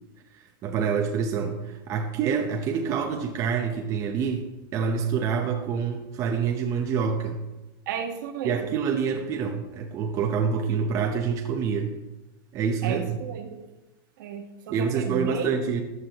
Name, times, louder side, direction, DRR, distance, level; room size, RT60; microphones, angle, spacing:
voice 1, 0.3-4.5 4.7-7.4 8.4-11.9 12.5-13.1 14.7-15.8, right 6 dB, 25° right, 3 dB, 0.8 m, -27 dB
voice 2, 7.9-8.8 12.8-13.6 14.2-15.6, right 7 dB, 55° right, 5 dB, 1.4 m, -34 dB
14.5 x 9.5 x 2.9 m, 1.1 s
supercardioid pair, 160°, 12 cm